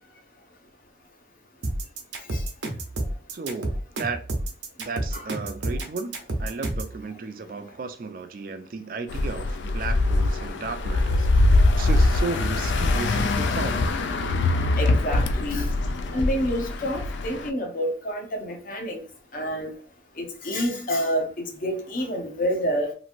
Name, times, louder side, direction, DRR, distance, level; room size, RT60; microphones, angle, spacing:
sound 1, 1.6-6.9, right 1 dB, 90° right, 0.7 m, -29 dB
voice 1, 3.3-4.2 4.8-11.5 11.8-13.9, right 4 dB, 50° right, 0.4 m, -34 dB
sound 2, 9.1-17.5, left 2 dB, 85° left, 0.4 m, -23 dB
voice 2, 14.8-15.7 16.1-19.0 19.3-19.7 20.2-22.9, equal, 45° left, 0.7 m, -28 dB
3.0 x 2.5 x 2.4 m
head